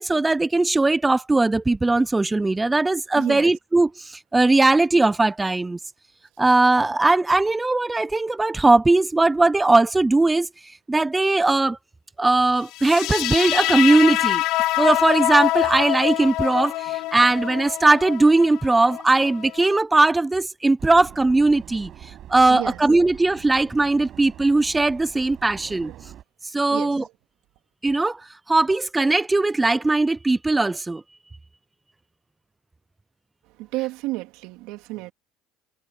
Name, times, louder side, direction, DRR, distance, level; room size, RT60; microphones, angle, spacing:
voice 1, 0.0-5.8 6.4-10.5 10.9-11.8 12.2-14.4 14.8-21.9 22.3-25.9 26.5-27.0 27.8-28.2 28.5-31.0, right 2 dB, 10° right, 0.5 m, -19 dB
voice 2, 3.2-3.6 22.5-22.8 25.6-26.0 26.7-27.1 33.4-35.1, right 20 dB, 70° right, 3.4 m, -32 dB
sound 1, 12.7-19.8, left 17 dB, 65° left, 1.0 m, -25 dB
Subway metro underground, 20.8-26.2, right 11 dB, 50° right, 6.7 m, -44 dB
supercardioid pair, 115°, 0 cm